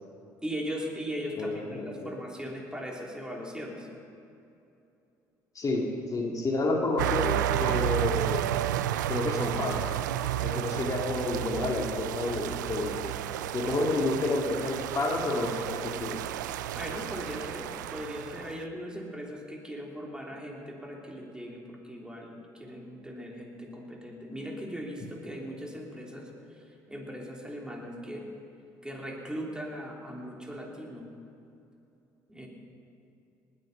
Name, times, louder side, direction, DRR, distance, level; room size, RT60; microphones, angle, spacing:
voice 1, 0.4-3.9 13.6-13.7 16.7-26.3 26.6-28.2 28.8-31.1 32.3-32.5, equal, 10° right, -1 dB, 3.3 m, -39 dB
voice 2, 1.4-2.1 5.6-8.6 9.1-9.9 10.4-13.1 13.5-16.2, left 2 dB, 35° left, 0 dB, 2.0 m, -30 dB
sound 1, 7.0-18.6, right 12 dB, 85° right, 0.4 m, -32 dB
19.0 x 8.8 x 5.6 m, 2.7 s
hypercardioid pair, 55°, 10 cm